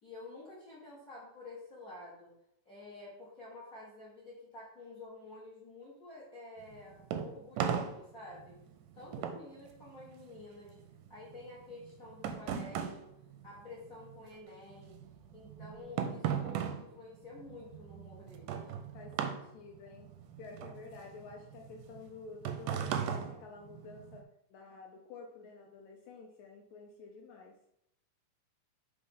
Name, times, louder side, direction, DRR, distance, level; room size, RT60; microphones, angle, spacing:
voice 1, 0.0-2.3 2.6-8.6 8.9-10.7 11.1-13.1 13.4-14.9 15.3-18.7, left 2 dB, 55° left, -7 dB, 0.9 m, -50 dB
sound 1, 6.6-14.3 14.5-24.2, right 8 dB, 80° right, 2.0 m, -38 dB
voice 2, 18.9-20.1 20.4-27.6, left 4 dB, 80° left, 1 dB, 1.6 m, -50 dB
5.6 x 3.3 x 5.5 m, 0.76 s
omnidirectional pair, 4.2 m